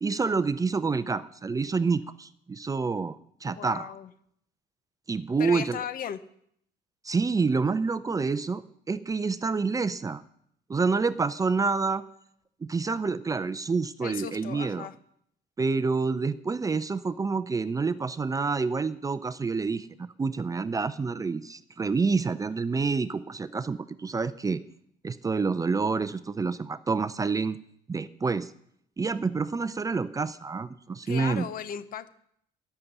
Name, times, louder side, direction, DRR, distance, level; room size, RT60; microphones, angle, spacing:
voice 1, 0.0-3.2 3.4-3.9 5.1-5.8 7.0-10.2 10.7-12.0 12.7-14.9 15.6-24.6 25.0-27.6 27.9-28.5 29.0-31.5, right 4 dB, 20° right, 13 dB, 0.5 m, -28 dB
voice 2, 3.5-4.1 5.4-6.2 14.0-15.0 31.0-32.1, left 9 dB, 55° left, 14 dB, 0.9 m, -36 dB
13.0 x 6.8 x 9.7 m, 0.70 s
cardioid pair, 110°, 17 cm